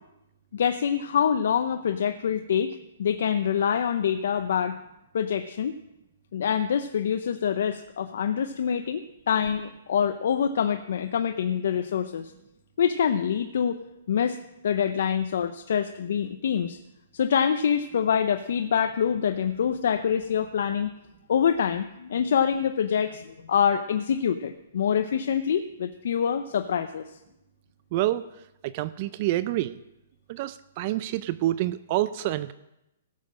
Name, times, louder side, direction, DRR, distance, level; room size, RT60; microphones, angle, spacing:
voice 1, 0.5-4.8 5.1-5.8 6.3-12.3 12.8-13.8 14.1-14.4 14.6-16.8 17.1-20.9 21.3-27.2, left 8 dB, 65° left, 8 dB, 0.7 m, -25 dB
voice 2, 27.9-28.2 28.6-29.8 30.3-32.5, right 15 dB, 40° right, 15 dB, 0.4 m, -27 dB
16.5 x 7.5 x 6.3 m, 0.89 s
hypercardioid pair, 155°, 0 cm